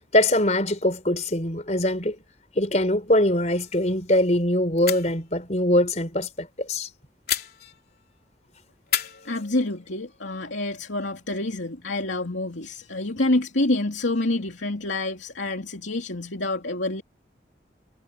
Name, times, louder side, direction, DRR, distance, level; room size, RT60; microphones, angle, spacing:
voice 1, 0.1-2.2 2.5-6.9, left 1 dB, 40° left, 4.5 m, -22 dB
sound 1, 3.5-3.9 4.2-4.3 4.8-5.2 7.3-8.1 8.9-10.0, left 11 dB, 55° left, 3.8 m, -32 dB
voice 2, 9.2-17.0, left 2 dB, 90° left, 2.9 m, -27 dB
head